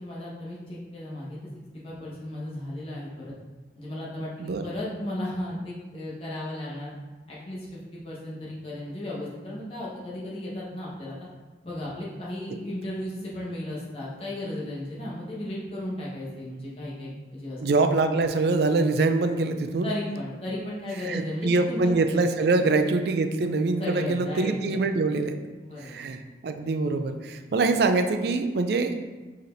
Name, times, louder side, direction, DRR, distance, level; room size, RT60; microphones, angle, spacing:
voice 1, 0.0-1.4 1.8-3.3 3.8-7.0 7.3-11.1 11.6-17.6 19.8-21.9 23.8-24.9 25.6-26.0 27.3-27.5, left 1 dB, 30° left, -6 dB, 1.1 m, -35 dB
voice 2, 17.6-19.9 21.1-25.4 25.8-28.9, right 3 dB, 60° right, 8 dB, 0.3 m, -24 dB
4.9 x 4.2 x 2.6 m, 1.2 s
head